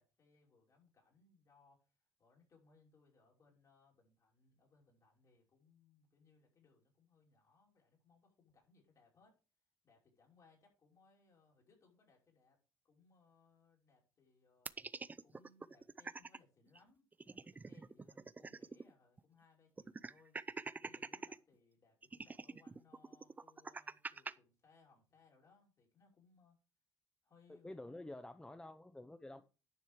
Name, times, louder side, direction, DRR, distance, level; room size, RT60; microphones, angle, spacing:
voice 1, 0.0-9.4 9.8-14.7 15.2-20.4 20.8-26.6 27.2-28.2, left 4 dB, 50° left, 5.7 m, -70 dB
sound 1, 14.7-16.4 16.8-16.9 17.1-18.9 19.2-19.3 19.8-21.4 22.0-24.3, right 4 dB, 25° right, 0.5 m, -46 dB
voice 2, 27.5-29.4, left 1 dB, 10° left, 0.7 m, -50 dB
10.5 x 6.3 x 4.8 m
cardioid pair, 85°, 7 cm